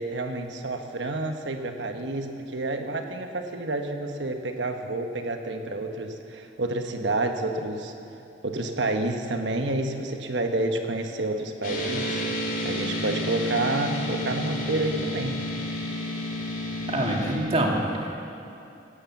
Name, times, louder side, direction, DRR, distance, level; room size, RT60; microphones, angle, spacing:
voice 1, 0.0-7.9 8.4-12.2 12.6-15.5, right 2 dB, 75° right, 5 dB, 1.2 m, -29 dB
sound 1, 11.6-17.4, left 1 dB, 50° left, 2.8 m, -30 dB
voice 2, 16.9-18.3, right 1 dB, 35° right, -1 dB, 2.1 m, -26 dB
17.5 x 8.7 x 7.1 m, 2.7 s
head